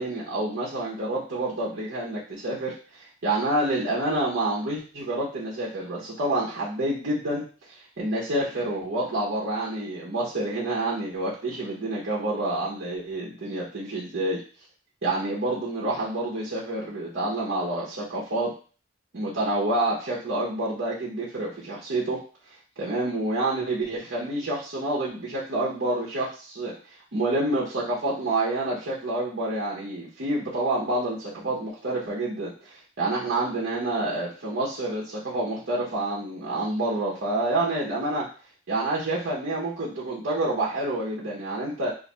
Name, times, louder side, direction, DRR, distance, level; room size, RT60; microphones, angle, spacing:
voice 1, 0.0-14.4 15.0-18.5 19.1-22.2 22.8-26.7 27.1-38.3 38.7-41.9, right 2 dB, 60° right, -6 dB, 0.8 m, -28 dB
2.5 x 2.4 x 4.1 m, 0.38 s
head